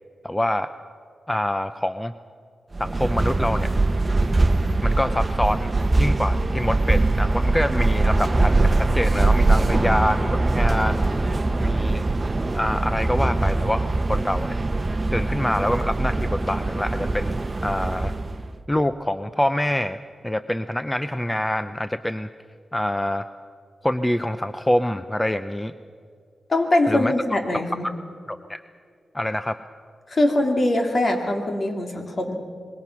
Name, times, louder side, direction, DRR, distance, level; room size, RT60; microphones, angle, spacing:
voice 1, 0.2-0.7 1.3-2.1 2.8-3.7 4.8-5.7 6.0-11.0 11.6-12.1 12.5-14.6 15.1-17.3 17.6-18.1 18.7-20.0 20.2-22.3 22.7-23.2 23.8-25.7 26.9-27.1 28.3-28.6 29.1-29.6, left 1 dB, 10° left, 11 dB, 0.6 m, -25 dB
sound 1, 2.7-18.5, right 2 dB, 30° right, 1.0 m, -22 dB
voice 2, 26.5-27.9 30.1-32.4, left 1 dB, 45° left, 3 dB, 2.9 m, -22 dB
26.0 x 21.0 x 6.0 m, 2.1 s
cardioid pair, 75°, 0 cm